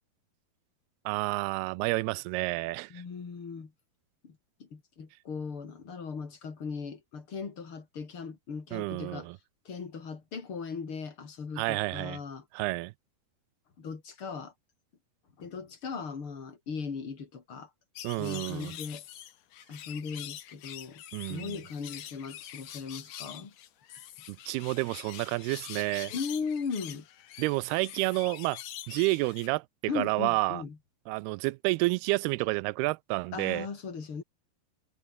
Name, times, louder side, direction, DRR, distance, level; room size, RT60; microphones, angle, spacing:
voice 1, 1.1-3.0 8.7-9.4 11.6-12.2 12.5-12.9 18.0-18.7 21.1-21.6 24.3-26.1 27.4-28.6 28.9-29.7 29.9-30.6 31.1-33.7, right 23 dB, 85° right, 2.5 m, -30 dB
voice 2, 2.9-3.7 4.2-9.3 9.7-12.4 13.8-14.5 15.4-17.7 18.2-19.0 19.7-23.5 26.1-27.1 29.9-30.8 33.3-34.2, left 5 dB, 35° left, 3.8 m, -38 dB
sound 1, 17.9-29.5, left 12 dB, 60° left, 2.6 m, -45 dB
omnidirectional pair, 4.5 m